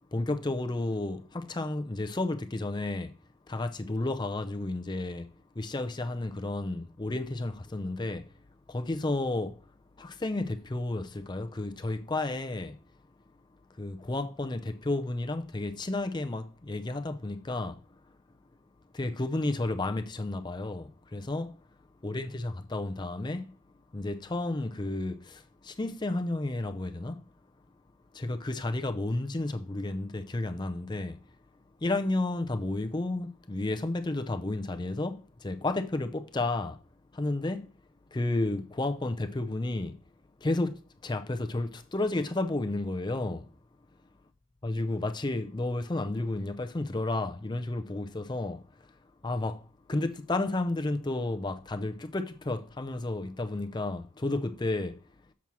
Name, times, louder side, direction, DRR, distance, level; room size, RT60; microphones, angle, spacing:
voice 1, 0.1-3.2 3.5-8.3 8.7-9.6 10.0-12.8 13.7-17.8 18.9-21.6 22.0-23.6 23.9-27.2 28.1-31.2 31.8-36.8 37.1-37.7 38.1-40.0 40.4-43.5 44.6-48.9 49.2-55.0, left 2 dB, 20° left, 0.5 m, -32 dB
7.2 x 4.4 x 6.0 m
head